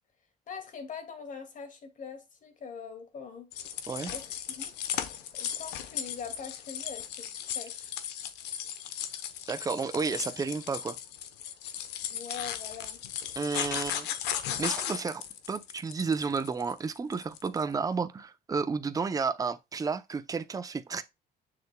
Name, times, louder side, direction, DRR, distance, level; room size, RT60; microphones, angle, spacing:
voice 1, 0.5-3.5 4.1-4.7 5.0-7.9 12.1-13.0, left 6 dB, 50° left, 2.3 m, -43 dB
sound 1, 3.5-17.6, left 10 dB, 85° left, 1.0 m, -36 dB
voice 2, 9.5-11.0 13.4-14.1 14.6-21.0, right 5 dB, 20° right, 0.7 m, -32 dB
6.8 x 6.6 x 2.3 m
cardioid pair, 110°, 17 cm